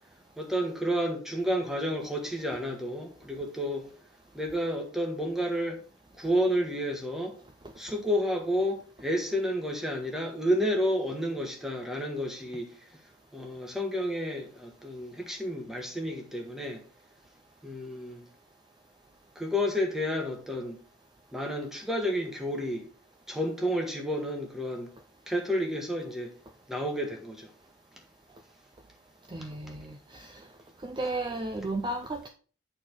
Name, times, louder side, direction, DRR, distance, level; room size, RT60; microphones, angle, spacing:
voice 1, 0.4-3.9 4.3-5.8 6.2-7.4 7.8-12.7 13.3-16.8 17.6-18.3 19.3-20.8 21.3-22.8 23.3-24.9 25.3-26.3 26.7-27.5 29.4-29.5, equal, ahead, 1.2 m, -30 dB
voice 2, 29.3-30.4 30.8-32.3, right 2 dB, 25° right, 0.5 m, -34 dB
8.7 x 4.2 x 4.5 m
head